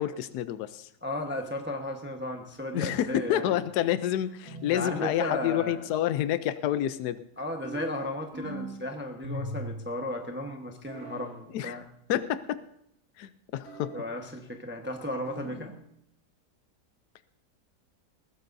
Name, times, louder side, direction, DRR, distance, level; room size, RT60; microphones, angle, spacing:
voice 1, 0.0-0.9 2.7-7.2 11.5-11.8 12.1-12.6 13.2-13.9, left 11 dB, 80° left, 13 dB, 1.2 m, -29 dB
voice 2, 1.0-3.5 4.7-5.8 7.4-11.8 13.9-15.7, left 1 dB, 10° right, 3 dB, 1.0 m, -35 dB
sound 1, 3.3-3.8 4.5-5.0 7.6-8.8 9.2-9.9 10.8-11.3 13.6-14.2 15.3-15.8, right 1 dB, 55° right, 2.8 m, -40 dB
20.5 x 15.5 x 2.7 m, 0.77 s
omnidirectional pair, 1.7 m